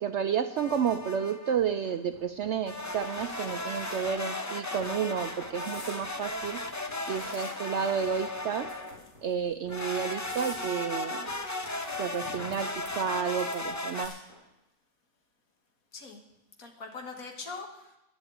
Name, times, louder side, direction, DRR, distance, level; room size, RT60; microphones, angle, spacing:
voice 1, 0.0-6.6 7.1-8.7 9.2-11.3 12.0-12.7 13.0-14.1, right 7 dB, 65° right, 9 dB, 0.7 m, -31 dB
sound 1, 0.6-1.6 2.7-9.1 9.7-14.1, left 2 dB, 25° left, 0.4 m, -36 dB
sound 2, 1.6-14.4, left 2 dB, 85° left, 5.6 m, -54 dB
sound 3, 2.8-4.0 4.5-4.7 5.6-6.0 6.6-7.8 8.6-9.2 9.7-9.8 10.2-10.6 11.5-12.6 12.8-13.1 13.4-14.3, left 1 dB, 50° left, 3.7 m, -50 dB
voice 2, 16.6-17.9, left 4 dB, 65° left, 3 dB, 2.0 m, -43 dB
11.0 x 7.2 x 9.1 m, 0.90 s
omnidirectional pair, 1.6 m